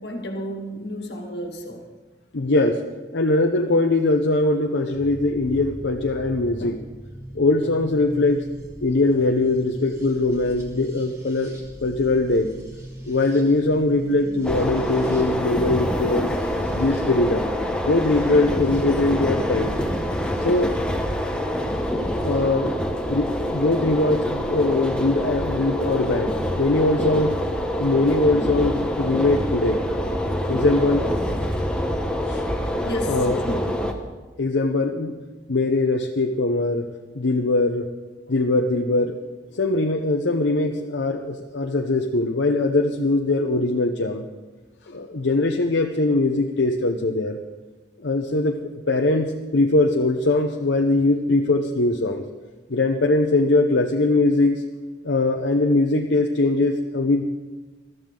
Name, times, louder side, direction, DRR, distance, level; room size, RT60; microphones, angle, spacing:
voice 1, 0.0-1.9 21.3-21.4 32.8-34.2 38.3-38.4, equal, 65° left, 3 dB, 1.9 m, -33 dB
voice 2, 2.3-2.8 3.1-6.8 7.3-8.4 8.8-11.6 11.8-12.5 13.0-16.3 16.7-17.5 17.8-19.8 20.4-21.0 22.2-22.7 23.1-27.4 27.8-29.8 30.5-31.1 32.3-32.4 33.1-33.4 34.4-35.2 35.5-36.9 37.1-37.9 38.3-39.2 39.5-44.2 44.9-47.4 48.0-48.6 48.9-52.2 52.7-54.6 55.0-57.2, left 2 dB, 80° left, 2 dB, 0.8 m, -21 dB
sound 1, 4.9-20.6 21.8-22.4, right 1 dB, 15° right, 2.9 m, -40 dB
sound 2, 14.4-33.9, equal, 5° left, 1.0 m, -26 dB
21.0 x 13.5 x 3.8 m, 1.3 s
head